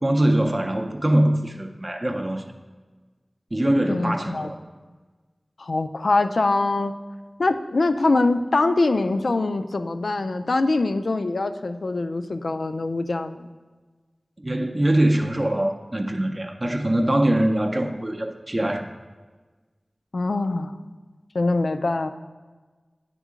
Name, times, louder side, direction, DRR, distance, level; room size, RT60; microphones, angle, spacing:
voice 1, 0.0-2.4 3.5-4.6 14.4-18.9, right 1 dB, 35° right, 4 dB, 0.5 m, -22 dB
voice 2, 3.9-4.5 5.6-6.9 7.4-13.5 20.1-20.8 21.3-22.1, left 2 dB, 80° left, 8 dB, 0.3 m, -23 dB
9.1 x 3.6 x 5.0 m, 1.4 s
wide cardioid pair, 50°, 0 cm